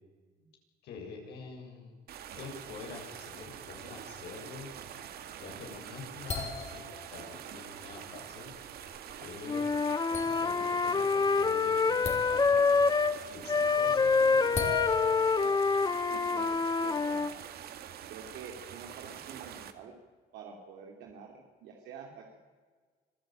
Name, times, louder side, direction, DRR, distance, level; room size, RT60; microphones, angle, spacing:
voice 1, 0.8-1.9 2.4-4.7 5.4-6.8 7.1-8.5 9.2-9.6 10.1-12.8 13.3-14.8, left 5 dB, 75° left, 1 dB, 7.4 m, -46 dB
sound 1, 2.1-19.7, right 9 dB, 65° right, 1.9 m, -45 dB
sound 2, 5.8-7.3 7.9-8.1 8.5-9.2 9.7-9.8 10.1-10.8 11.1-11.5 12.0-12.8 13.4-13.8 14.5-15.8, left 5 dB, 40° left, 4.8 m, -39 dB
Wind instrument woodwind instrument, 9.4-13.2 13.5-17.3, left 4 dB, 25° left, 0.8 m, -26 dB
voice 2, 16.0-17.4 18.1-19.9 20.3-22.4, right 6 dB, 85° right, 0 dB, 3.0 m, -48 dB
25.5 x 15.5 x 9.1 m, 1.5 s
cardioid pair, 110°, 17 cm